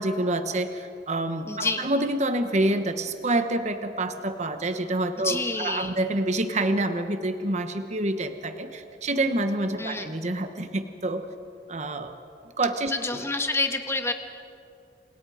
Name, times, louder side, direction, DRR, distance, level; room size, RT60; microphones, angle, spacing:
voice 1, 0.0-11.2 11.7-12.1 12.6-13.2, right 2 dB, 40° right, 8 dB, 1.2 m, -27 dB
voice 2, 1.5-1.9 5.2-6.0 9.8-10.2 12.9-14.1, left 3 dB, 15° left, 6 dB, 1.5 m, -28 dB
29.0 x 27.0 x 5.0 m, 2.5 s
head